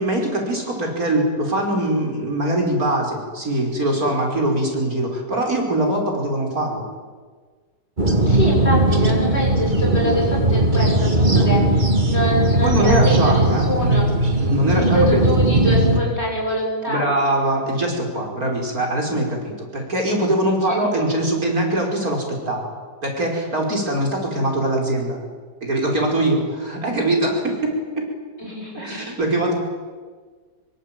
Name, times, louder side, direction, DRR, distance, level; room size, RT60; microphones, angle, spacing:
voice 1, 0.0-6.8 12.6-13.7 14.4-15.2 16.9-22.7 23.0-25.2 25.6-28.1 28.7-29.5, right 1 dB, 55° right, 1 dB, 5.9 m, -22 dB
sound 1, 8.0-16.0, right 1 dB, 25° right, 2.6 m, -18 dB
voice 2, 8.2-14.1 14.7-17.0 20.7-21.0 28.4-29.2, equal, 35° left, -1 dB, 7.7 m, -25 dB
25.5 x 24.0 x 9.1 m, 1.5 s
omnidirectional pair, 1.8 m